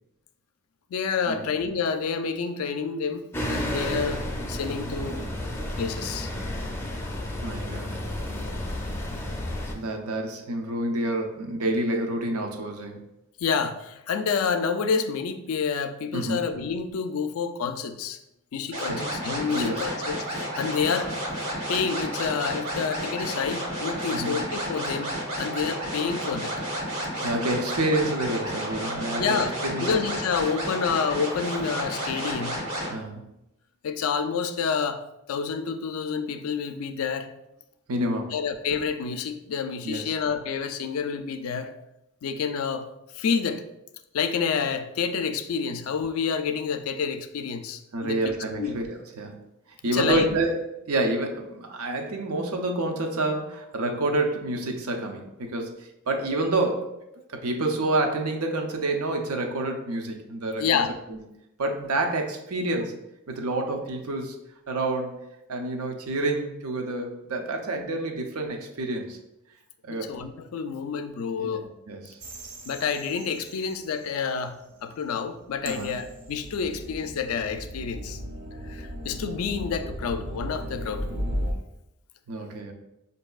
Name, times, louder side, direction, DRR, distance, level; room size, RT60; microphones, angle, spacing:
voice 1, 0.9-5.2 5.8-6.3 13.4-18.2 18.5-21.2 21.7-26.5 29.2-29.5 29.8-32.6 33.8-35.0 35.3-37.3 38.3-41.7 42.2-42.9 43.1-43.6 44.1-48.8 49.9-50.3 60.6-60.9 69.9-71.6 72.7-78.2 78.6-81.1, left 6 dB, 75° left, 9 dB, 0.3 m, -28 dB
sound 1, 3.3-9.7, left 1 dB, 10° left, 0.4 m, -31 dB
voice 2, 7.4-8.1 9.7-13.0 16.1-16.4 18.9-19.1 19.5-19.8 24.1-24.5 27.2-30.0 32.9-33.3 37.9-38.3 39.8-40.1 47.9-49.5 49.8-50.6 50.9-56.9 57.3-60.8 61.1-61.2 61.6-62.9 63.3-64.4 64.7-65.2 65.5-69.2 69.8-70.1 71.4-72.2 75.7-76.0 82.3-82.7, right 2 dB, 85° right, 3 dB, 0.6 m, -28 dB
sound 2, 18.7-32.9, equal, 70° right, 1.3 m, -31 dB
sound 3, 72.2-74.5 75.4-81.5, equal, 40° right, 0.5 m, -36 dB
5.2 x 2.7 x 2.3 m, 0.88 s
head